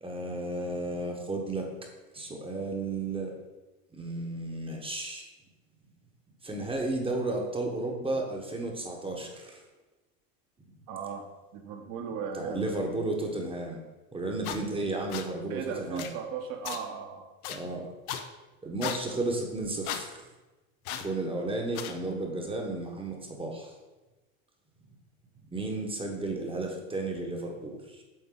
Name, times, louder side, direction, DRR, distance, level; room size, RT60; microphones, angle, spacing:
voice 1, 0.0-1.7 2.1-3.3 3.9-5.2 6.4-9.6 12.3-13.8 14.1-16.1 17.5-17.9 18.6-20.2 21.0-23.7 25.5-28.0, right 2 dB, 10° right, 2 dB, 1.1 m, -33 dB
voice 2, 10.9-11.2 11.5-12.9 15.5-17.3, right 6 dB, 45° right, 3 dB, 1.2 m, -37 dB
sound 1, 14.4-14.6 15.1-15.2 16.0-16.1 16.6-16.8 17.4-17.6 18.1-18.2 18.8-19.0 19.8-20.0 20.8-21.1 21.7-21.9, left 10 dB, 80° left, 0.8 m, -35 dB
7.6 x 3.9 x 3.8 m, 1.1 s
supercardioid pair, 105°, 44 cm